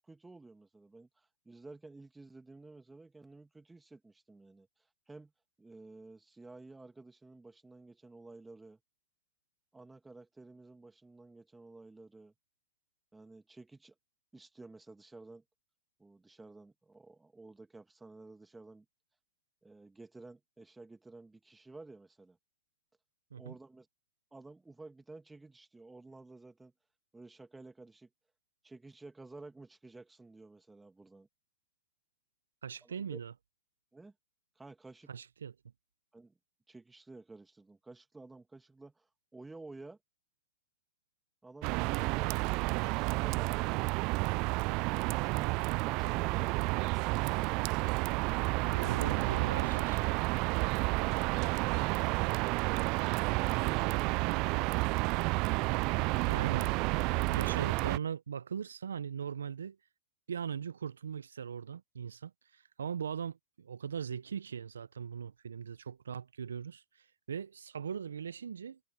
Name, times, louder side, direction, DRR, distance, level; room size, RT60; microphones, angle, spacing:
voice 1, 0.0-4.7 5.1-5.3 5.6-8.8 9.7-12.3 13.1-13.9 14.3-15.4 16.0-18.9 19.6-22.4 23.3-23.9 24.3-26.7 27.1-28.1 28.6-31.3 32.8-33.2 33.9-34.1 34.6-35.1 36.1-36.4 36.7-40.0 41.4-43.8, right 3 dB, 10° right, 2.2 m, -53 dB
voice 2, 32.6-33.3 35.1-35.5 48.6-50.2 56.3-59.8 60.3-68.8, right 7 dB, 80° right, 0.7 m, -39 dB
sound 1, 41.6-58.0, right 27 dB, 45° right, 0.3 m, -30 dB
hypercardioid pair, 110°, 0 cm